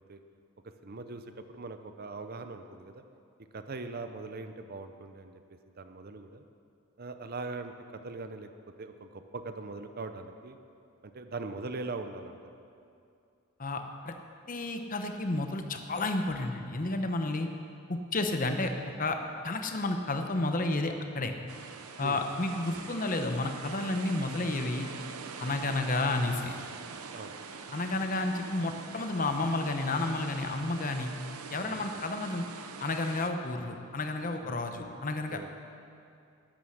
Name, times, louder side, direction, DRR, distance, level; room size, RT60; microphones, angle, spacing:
voice 1, 0.8-1.2 1.5-3.0 3.5-5.4 5.8-6.4 7.0-8.5 8.8-10.6 11.0-12.4 22.0-22.2 27.1-27.4 31.7-31.8 34.4-34.6 35.3-35.5, right 3 dB, 45° right, 8 dB, 0.6 m, -41 dB
voice 2, 13.6-14.2 14.5-17.5 17.9-18.7 19.0-19.2 19.4-21.3 22.0-24.9 25.4-26.5 27.7-31.1 31.5-32.5 32.8-35.4, left 2 dB, 40° left, 6 dB, 0.8 m, -31 dB
sound 1, 21.5-33.3, right 5 dB, 80° right, 0.8 m, -44 dB
11.5 x 9.3 x 6.5 m, 2.5 s
head